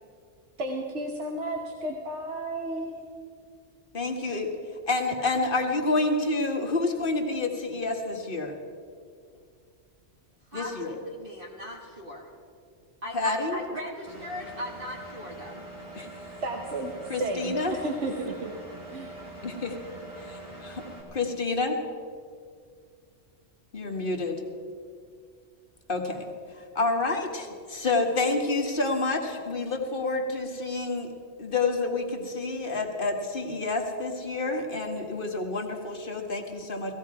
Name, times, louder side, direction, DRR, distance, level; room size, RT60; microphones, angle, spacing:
voice 1, 0.6-3.0 16.4-18.5 18.9-19.1, right 2 dB, 75° right, 1 dB, 1.4 m, -33 dB
voice 2, 3.9-4.5 4.9-8.6 10.5-11.0 13.1-13.6 15.9-16.1 17.1-17.7 19.4-19.8 20.2-20.8 21.1-21.8 23.7-24.4 25.9-26.2 26.7-31.1 31.4-36.9, left 3 dB, 50° left, 2 dB, 1.6 m, -28 dB
voice 3, 10.5-12.3 13.0-15.6, left 1 dB, 50° right, -1 dB, 1.7 m, -39 dB
Engine, 14.1-21.0, right 1 dB, 30° right, 3.6 m, -43 dB
17.5 x 15.5 x 4.7 m, 2.2 s
omnidirectional pair, 1.2 m